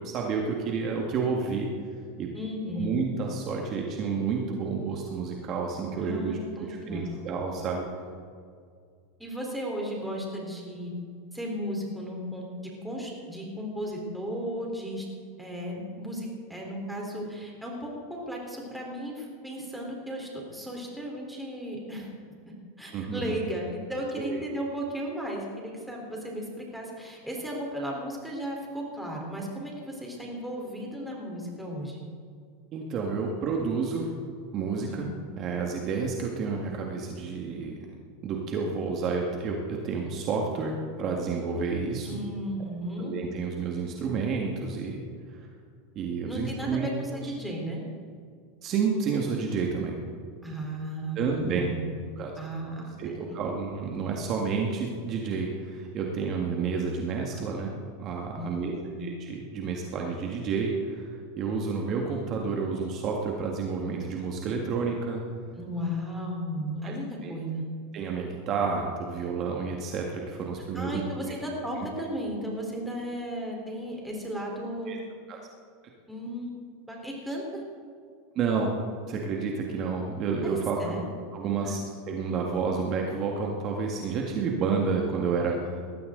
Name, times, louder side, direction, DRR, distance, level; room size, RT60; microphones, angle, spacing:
voice 1, 0.0-1.7 2.2-2.3 2.8-7.9 22.9-23.4 24.2-24.4 32.7-34.1 34.5-35.1 35.4-37.9 38.2-42.1 43.0-45.1 45.4-45.5 46.0-47.2 48.6-50.0 51.2-51.7 52.2-52.4 53.0-57.7 58.0-58.7 59.0-65.2 66.8-66.9 67.2-67.3 67.9-71.0 74.9-75.0 75.3-75.4 78.4-78.7 79.1-81.0 81.3-81.8 82.1-85.8, right 5 dB, 40° right, 0 dB, 1.9 m, -30 dB
voice 2, 2.3-2.9 6.0-7.3 9.2-10.9 11.3-12.5 12.8-15.1 15.4-22.1 22.8-32.0 34.8-35.0 42.1-43.1 46.3-47.8 50.4-52.0 52.4-53.4 58.3-59.1 65.5-67.6 70.7-74.9 76.1-76.5 76.9-77.6 80.4-80.5 80.8-81.0 81.6-81.7, equal, 5° right, -2 dB, 4.1 m, -35 dB
19.5 x 13.5 x 4.0 m, 2.2 s
supercardioid pair, 120°, 0 cm